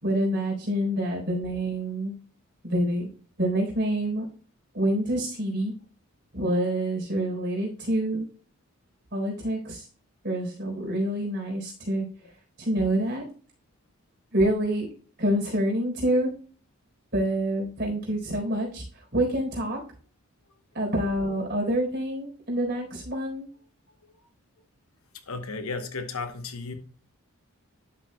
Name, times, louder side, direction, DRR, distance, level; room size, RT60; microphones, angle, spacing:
voice 1, 0.0-2.2 2.6-3.1 3.4-4.2 4.7-5.7 6.3-8.2 9.1-9.9 10.2-12.1 12.6-13.2 14.3-14.9 15.2-16.3 17.1-18.8 19.1-19.8 20.7-23.5, right 1 dB, 50° right, 4.0 m, -27 dB
voice 2, 25.3-26.7, left 4 dB, 80° left, 1.0 m, -34 dB
11.5 x 6.2 x 2.3 m
head